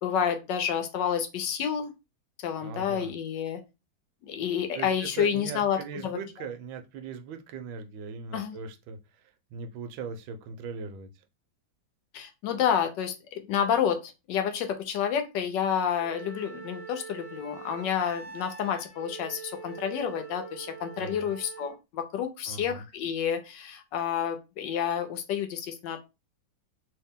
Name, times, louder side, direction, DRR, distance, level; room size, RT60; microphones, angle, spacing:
voice 1, 0.0-1.9 2.4-3.6 4.2-6.2 8.3-8.6 12.1-26.0, left 8 dB, 70° left, 1.2 m, -29 dB
voice 2, 2.6-3.1 4.7-9.0 9.5-11.1 21.0-21.3 22.5-22.8, right 5 dB, 80° right, 1.4 m, -39 dB
Wind instrument woodwind instrument, 16.0-21.8, right 5 dB, 20° left, 1.2 m, -43 dB
3.2 x 2.8 x 3.5 m
omnidirectional pair, 2.2 m